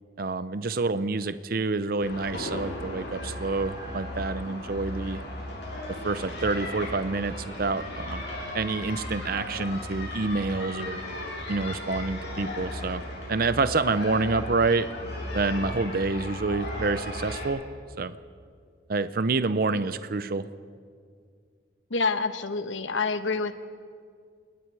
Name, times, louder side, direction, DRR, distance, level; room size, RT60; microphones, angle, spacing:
voice 1, 0.2-5.2 6.0-8.2 8.5-11.0 11.5-13.0 13.3-14.9 15.3-17.6 18.0-18.1 18.9-20.5, right 3 dB, 50° right, 13 dB, 0.6 m, -27 dB
sound 1, 2.0-17.5, left 1 dB, 60° left, 7.4 m, -36 dB
voice 2, 21.9-23.6, left 4 dB, 80° left, 10 dB, 1.2 m, -27 dB
28.5 x 19.5 x 4.8 m, 2.2 s
head